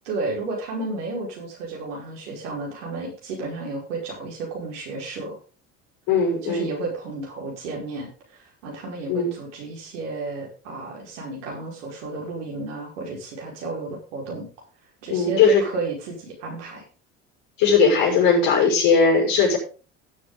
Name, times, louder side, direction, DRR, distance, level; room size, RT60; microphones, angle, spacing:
voice 1, 0.1-5.4 6.4-14.5 15.0-16.8, right 3 dB, 80° right, -1 dB, 5.2 m, -32 dB
voice 2, 6.1-6.7 9.1-9.3 15.1-15.6 17.6-19.6, left 5 dB, 65° left, 0 dB, 5.8 m, -18 dB
17.5 x 7.3 x 3.9 m, 0.36 s
hypercardioid pair, 70°, 35 cm